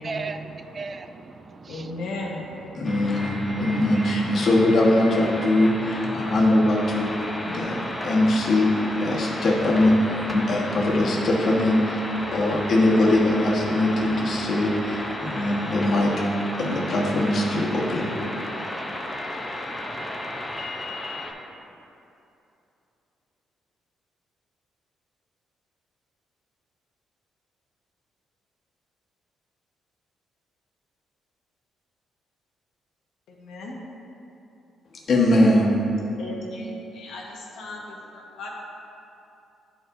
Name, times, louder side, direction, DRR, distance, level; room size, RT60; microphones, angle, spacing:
voice 1, 0.0-2.0 2.6-2.8 3.6-3.7 3.9-4.2 6.1-6.3 7.2-8.1 9.1-9.3, right 4 dB, 35° right, 9 dB, 0.3 m, -38 dB
voice 2, 1.7-2.4 33.3-33.7 36.2-38.5, left 2 dB, 80° left, -2 dB, 1.1 m, -36 dB
voice 3, 2.8-5.7 6.1-7.1 7.5-7.8 8.0-8.7 9.0-9.9 10.3-11.7 12.3-14.7 15.2-16.1 16.6-18.1 35.1-35.7, left 1 dB, 55° left, -3 dB, 1.3 m, -21 dB
sound 1, 2.8-21.3, left 1 dB, 15° left, 0.8 m, -33 dB
10.5 x 4.6 x 2.6 m, 2.8 s
cardioid pair, 90°, 0 cm